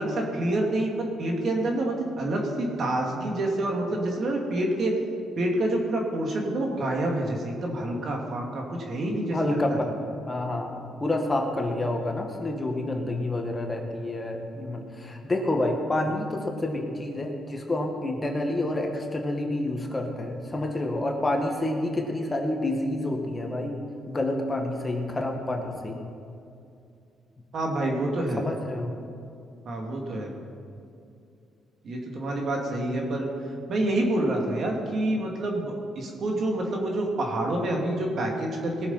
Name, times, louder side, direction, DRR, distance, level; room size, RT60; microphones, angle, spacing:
voice 1, 0.0-4.9 5.4-9.6 27.5-28.4 29.6-30.3 31.8-33.3 33.7-38.9, right 1 dB, 55° right, 1 dB, 2.5 m, -27 dB
voice 2, 9.3-9.9 10.3-23.8 24.1-26.0 28.3-28.9, left 1 dB, 20° left, 2 dB, 1.7 m, -28 dB
19.0 x 7.0 x 5.7 m, 2.6 s
cardioid pair, 90°, 0 cm